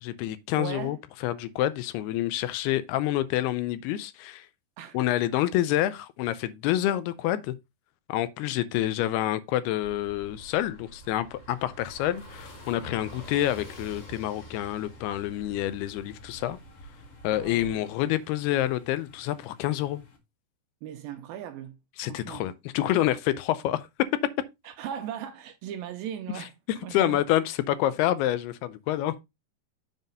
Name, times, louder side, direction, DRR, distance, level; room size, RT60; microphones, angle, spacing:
voice 1, 0.0-1.0 1.2-4.5 4.9-7.6 8.1-16.6 17.2-20.0 22.0-23.9 26.4-26.5 26.9-29.2, left 13 dB, 80° left, 2.6 m, -27 dB
voice 2, 0.6-1.0 4.8-5.0 17.3-17.9 20.8-21.8 22.0-22.5 24.7-26.5 26.8-27.2, right 10 dB, 80° right, 2.2 m, -38 dB
Car passing by / Engine, 9.8-17.7, right 1 dB, 65° left, 4.4 m, -47 dB
sound 1, 12.3-20.2, left 7 dB, 45° left, 1.9 m, -55 dB
7.2 x 3.9 x 5.3 m
omnidirectional pair, 4.7 m